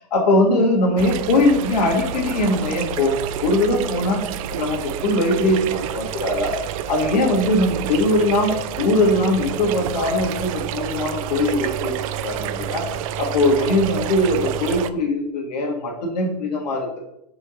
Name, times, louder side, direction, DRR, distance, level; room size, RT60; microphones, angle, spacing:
voice 1, 0.0-4.2 4.5-6.6 6.9-11.9 12.2-12.9 13.2-17.0, left 1 dB, 80° left, -1 dB, 2.0 m, -21 dB
sound 1, 1.0-14.9, right 10 dB, 55° right, 0.4 m, -29 dB
5.0 x 4.5 x 5.1 m, 0.79 s
supercardioid pair, 145°, 20 cm